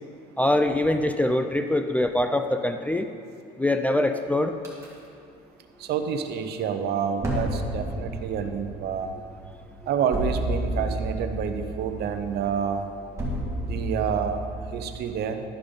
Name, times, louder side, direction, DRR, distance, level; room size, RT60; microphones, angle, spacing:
voice 1, 0.4-3.1 3.6-4.5, left 1 dB, 10° left, 6 dB, 0.3 m, -23 dB
sound 1, 4.6-4.9 7.2-14.9, right 1 dB, 15° right, 2.3 m, -32 dB
voice 2, 5.8-9.1 9.9-12.8 13.6-14.4 14.7-15.4, right 7 dB, 60° right, 7 dB, 0.8 m, -28 dB
11.5 x 5.2 x 5.3 m, 2.4 s
cardioid pair, 105°, 19 cm